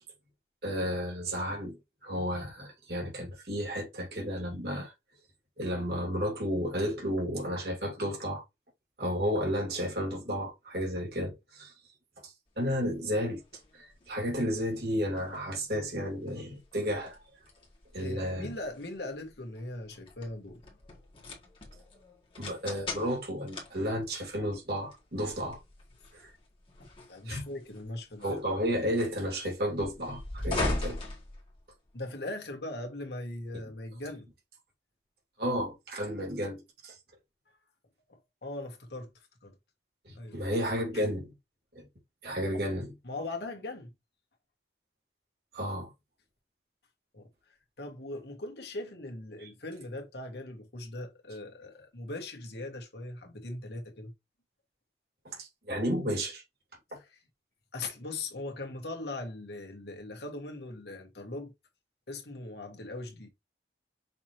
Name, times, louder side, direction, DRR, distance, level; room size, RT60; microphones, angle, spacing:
voice 1, 0.6-4.9 5.6-8.4 9.0-11.7 12.2-13.4 13.7-17.2 17.9-18.5 22.4-25.6 26.1-26.3 27.3-27.4 28.2-31.0 35.4-37.0 40.0-41.3 41.7-41.8 42.2-42.9 45.5-45.9 49.4-49.5 55.2-56.4, equal, 65° right, 2.4 m, -32 dB
opening door ivo, 12.6-32.0, left 2 dB, 30° left, 1.6 m, -41 dB
voice 2, 18.0-20.6 26.8-28.2 31.9-34.3 38.1-39.1 39.4-39.5 40.1-40.4 40.9-41.0 42.5-42.6 43.0-43.9 47.1-47.3 47.8-54.1 56.9-57.1 57.7-61.5 62.1-63.3, left 2 dB, 70° left, 1.5 m, -40 dB
5.9 x 3.0 x 2.9 m
head